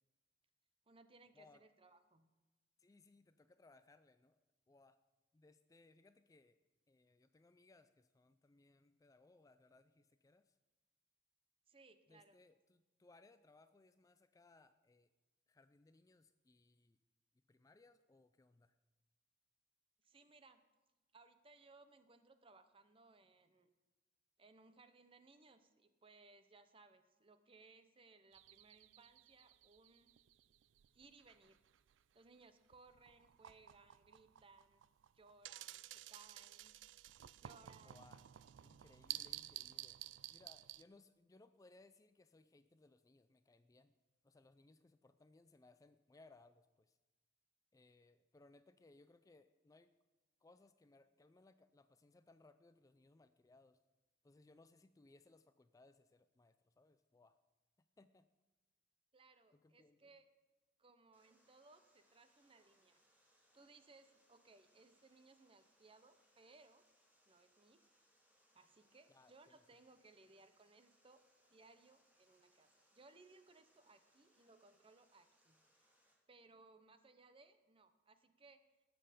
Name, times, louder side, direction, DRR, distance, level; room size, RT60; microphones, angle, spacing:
voice 1, 0.9-2.3 11.7-12.4 20.0-20.6 21.1-23.7 24.4-30.1 30.9-31.6 32.1-34.8 35.1-36.8 37.4-38.0 59.1-60.3 60.8-63.0 63.5-66.8 67.3-67.9 68.5-71.2 71.5-75.9 76.3-78.6, right 3 dB, 30° right, 10 dB, 0.8 m, -65 dB
voice 2, 2.8-4.4 4.7-5.0 5.3-6.6 6.9-10.6 12.1-15.1 15.5-17.0 17.5-18.7 37.8-38.3 38.6-40.0 40.3-43.9 44.2-47.0 47.7-49.9 50.4-53.8 54.2-57.4 57.8-58.3 59.5-60.1 69.1-69.6, left 2 dB, 20° left, 11 dB, 0.3 m, -67 dB
sound 1, 28.3-32.0 32.7-40.8, right 14 dB, 80° right, 0.4 m, -53 dB
Water, 61.1-76.1, equal, 10° right, 3.1 m, -76 dB
18.5 x 7.8 x 5.1 m, 1.2 s
head